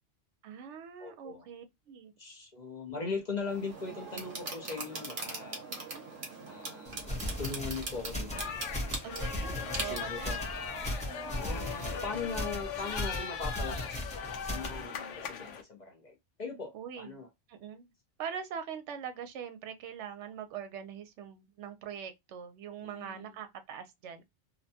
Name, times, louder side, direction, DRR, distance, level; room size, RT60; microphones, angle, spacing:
voice 1, 0.4-2.1 5.8-6.1 9.0-10.5 16.7-17.9 18.2-24.2, right 8 dB, 75° right, 0.9 m, -43 dB
voice 2, 1.0-1.5 2.2-5.6 6.5-8.5 9.8-10.4 11.3-17.3 22.8-23.3, left 4 dB, 40° left, 0.8 m, -40 dB
sound 1, 3.4-12.0, right 3 dB, 45° right, 1.0 m, -42 dB
sound 2, 6.9-14.8, left 1 dB, 5° left, 0.6 m, -38 dB
sound 3, 8.3-15.6, left 7 dB, 85° left, 1.0 m, -39 dB
2.7 x 2.2 x 2.6 m
omnidirectional pair, 1.2 m